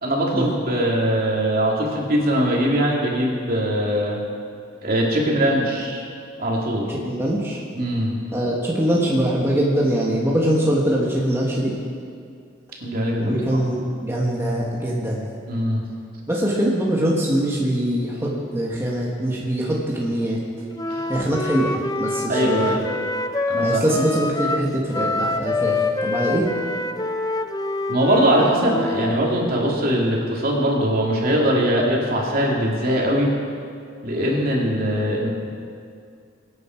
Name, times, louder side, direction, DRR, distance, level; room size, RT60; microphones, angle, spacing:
voice 1, 0.0-4.2 4.8-6.0 6.4-6.9 7.7-8.1 12.8-13.4 15.5-15.8 20.9-21.1 22.3-22.9 23.5-23.9 27.9-33.3 34.0-35.3, equal, 50° right, -2 dB, 2.8 m, -21 dB
voice 2, 7.0-7.6 8.3-11.7 13.2-15.3 16.3-20.4 21.1-22.7 23.6-26.5, right 1 dB, 15° right, -4 dB, 1.6 m, -23 dB
Wind instrument woodwind instrument, 20.8-29.2, left 2 dB, 20° left, 0.6 m, -26 dB
23.5 x 9.6 x 4.6 m, 2.3 s
head